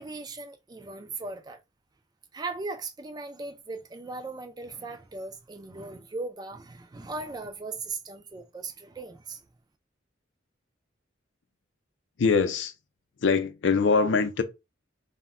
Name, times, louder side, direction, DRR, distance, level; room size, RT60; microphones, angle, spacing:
voice 1, 0.0-1.6 2.3-9.4, right 3 dB, 20° right, 0.3 m, -38 dB
voice 2, 12.2-12.7 13.2-14.4, left 5 dB, 65° left, 0.4 m, -23 dB
2.1 x 2.1 x 3.6 m
head